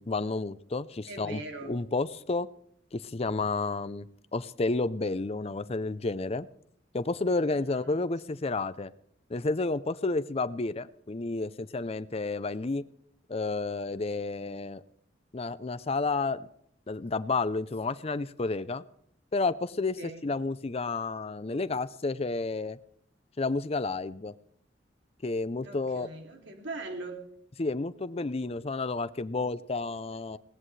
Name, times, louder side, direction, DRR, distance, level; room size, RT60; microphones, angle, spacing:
voice 1, 0.0-2.5 2.9-6.5 6.9-8.9 9.3-12.8 13.3-14.8 15.3-16.4 16.9-18.8 19.3-22.8 23.4-24.3 25.2-26.1 27.6-30.4, left 3 dB, 35° left, 14 dB, 0.6 m, -31 dB
voice 2, 1.1-1.8 7.5-7.8 20.0-20.2 25.6-27.3, right 2 dB, 75° right, 3 dB, 2.7 m, -41 dB
20.0 x 18.0 x 3.3 m, 0.67 s
head